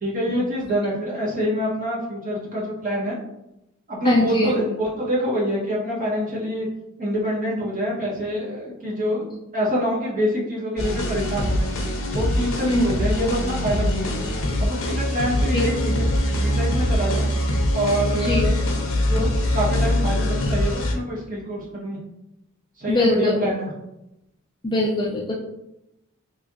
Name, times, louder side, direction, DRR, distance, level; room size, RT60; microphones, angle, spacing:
voice 1, 0.0-3.2 3.9-6.7 7.0-11.7 12.1-14.2 14.6-17.3 17.7-22.0 22.8-23.7, equal, 40° right, -5 dB, 1.0 m, -26 dB
voice 2, 4.0-4.6 12.7-12.9 15.5-15.7 18.1-18.4 22.9-23.5 24.6-25.3, left 1 dB, 20° left, -2 dB, 0.3 m, -22 dB
sound 1, 10.8-20.9, left 1 dB, 70° left, 0.6 m, -23 dB
3.2 x 2.8 x 2.4 m, 0.88 s
head